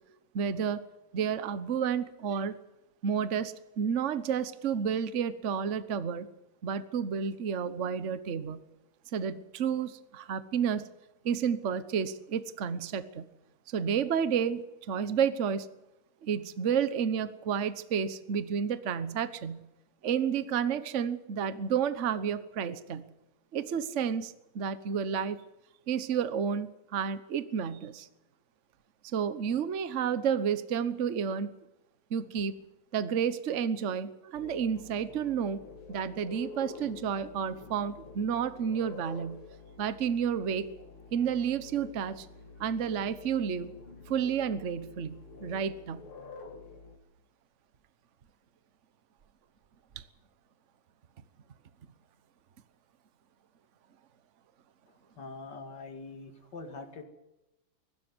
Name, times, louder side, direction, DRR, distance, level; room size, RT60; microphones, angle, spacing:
voice 1, 0.3-0.8 1.1-2.6 3.0-6.3 6.6-8.6 9.1-10.9 11.2-13.3 13.7-15.7 16.2-19.7 20.0-23.1 23.5-25.4 25.9-28.1 29.0-31.5 32.1-32.6 32.9-35.6 35.9-39.4 39.8-40.7 41.1-42.3 42.6-43.7 44.1-46.0, right 7 dB, 45° right, 13 dB, 1.2 m, -31 dB
sound 1, 34.3-47.0, left 4 dB, 85° left, 3.1 m, -48 dB
voice 2, 55.2-57.0, left 3 dB, 55° left, 6 dB, 2.9 m, -43 dB
22.5 x 12.5 x 9.5 m, 0.95 s
omnidirectional pair, 2.3 m